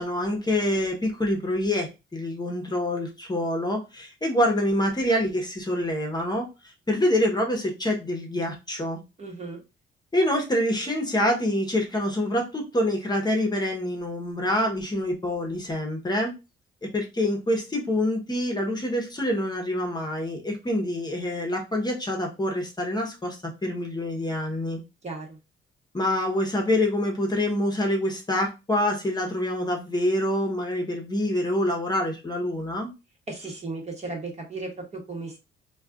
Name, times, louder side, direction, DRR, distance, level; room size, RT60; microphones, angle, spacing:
voice 1, 0.0-9.0 10.1-16.3 16.8-24.8 25.9-32.9, left 1 dB, 20° left, 1 dB, 0.9 m, -26 dB
voice 2, 9.2-9.6 25.0-25.4 33.3-35.4, right 3 dB, 35° right, 1 dB, 1.1 m, -35 dB
2.4 x 2.3 x 3.6 m, 0.27 s
cardioid pair, 90°, 20 cm